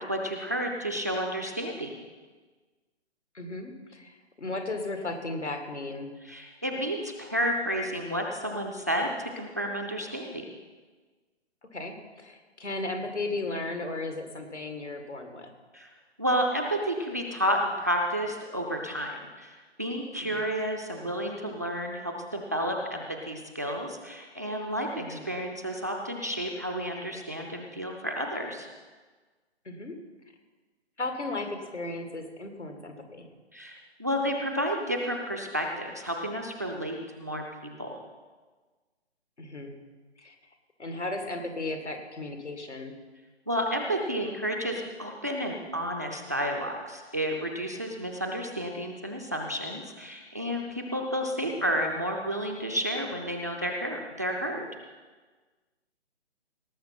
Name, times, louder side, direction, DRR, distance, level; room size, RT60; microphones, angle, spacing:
voice 1, 0.1-1.9 6.2-10.4 15.7-15.9 16.2-28.7 33.5-38.0 43.5-54.7, equal, 15° right, 2 dB, 0.4 m, -31 dB
voice 2, 3.3-6.1 11.7-15.5 20.2-20.5 25.0-25.3 29.7-29.9 31.0-33.3 39.4-39.8 40.2-40.3 40.8-43.0, left 2 dB, 85° left, 5 dB, 2.1 m, -35 dB
18.0 x 7.0 x 5.8 m, 1.3 s
figure-of-eight pair, 140°, 34 cm